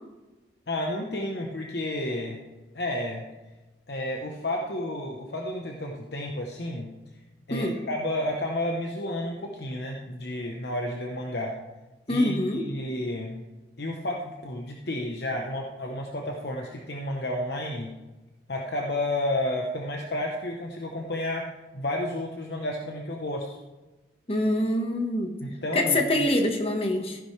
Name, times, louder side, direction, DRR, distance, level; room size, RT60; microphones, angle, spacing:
voice 1, 0.7-2.4 2.7-3.3 3.9-6.9 7.5-11.6 12.1-13.4 13.8-17.9 18.5-23.6 25.4-26.2, left 1 dB, 65° left, 1 dB, 1.0 m, -31 dB
voice 2, 12.1-12.6 24.3-25.3 25.7-27.2, left 1 dB, 30° left, 3 dB, 1.4 m, -25 dB
15.0 x 10.0 x 3.3 m, 1.2 s
head